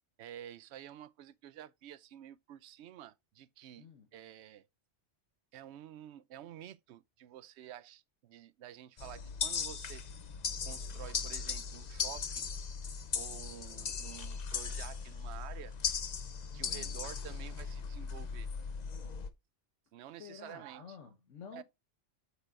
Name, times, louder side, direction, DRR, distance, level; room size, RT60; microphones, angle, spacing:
voice 1, 0.2-3.9 4.1-4.7 5.5-10.0 10.6-12.5 13.1-15.7 16.5-18.5 19.9-21.0 21.5-21.6, right 11 dB, 70° right, 0.8 m, -50 dB
voice 2, 3.8-4.1 16.5-17.0 20.2-21.6, left 6 dB, 80° left, 1.4 m, -51 dB
sound 1, 9.0-19.3, left 6 dB, 40° left, 0.7 m, -38 dB
9.0 x 6.9 x 2.4 m
omnidirectional pair, 1.3 m